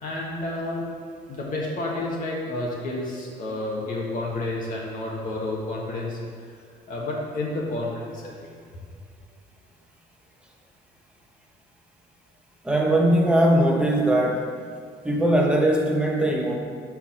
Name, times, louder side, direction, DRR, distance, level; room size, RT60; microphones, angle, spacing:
voice 1, 0.0-0.8 1.3-6.2 6.9-8.3, left 2 dB, 55° left, -3 dB, 1.3 m, -30 dB
voice 2, 12.6-14.5 15.0-16.6, right 1 dB, 5° right, 0 dB, 1.0 m, -20 dB
5.7 x 4.7 x 5.7 m, 2.1 s
cardioid pair, 110°, 17 cm